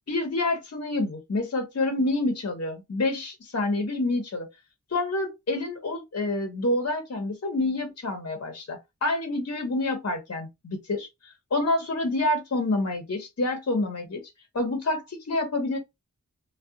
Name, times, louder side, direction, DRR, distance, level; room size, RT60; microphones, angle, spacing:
voice 1, 0.1-4.5 4.9-14.2 14.5-15.8, left 2 dB, 55° left, 0.7 m, -28 dB
2.4 x 2.1 x 2.6 m
wide cardioid pair, 55°, 31 cm